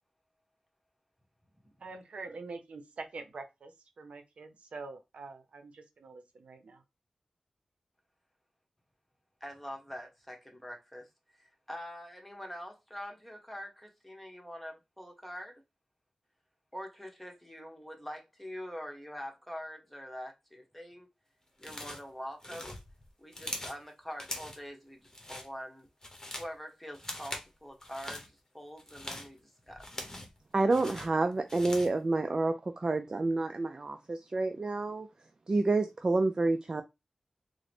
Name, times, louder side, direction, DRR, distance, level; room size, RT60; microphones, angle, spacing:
voice 1, 1.8-6.8, right 3 dB, 80° right, 0.6 m, -45 dB
voice 2, 9.4-15.6 16.7-21.1 21.6-22.8 23.2-25.9 26.4-29.8, equal, 5° left, 1.1 m, -44 dB
sound 1, 21.6-22.1 22.4-23.8 24.2-24.7 25.0-25.5 25.9-26.5 26.9-27.5 27.8-28.3 28.8-30.4 30.7-32.0, left 1 dB, 25° left, 0.9 m, -42 dB
voice 3, 30.5-35.1 35.5-36.8, right 2 dB, 40° right, 0.3 m, -29 dB
3.7 x 2.1 x 3.3 m
wide cardioid pair, 70°, 2 cm